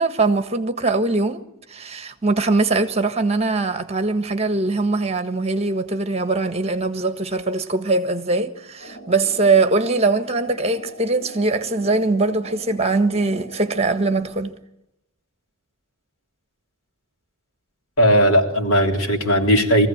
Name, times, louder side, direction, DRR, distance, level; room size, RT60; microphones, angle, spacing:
voice 1, 0.0-1.4 1.7-14.5, right 3 dB, 30° right, 1.5 m, -21 dB
sound 1, 8.8-14.2, equal, 45° left, 7.8 m, -41 dB
voice 2, 18.0-19.9, equal, 90° left, 3.5 m, -17 dB
23.0 x 15.5 x 8.8 m
head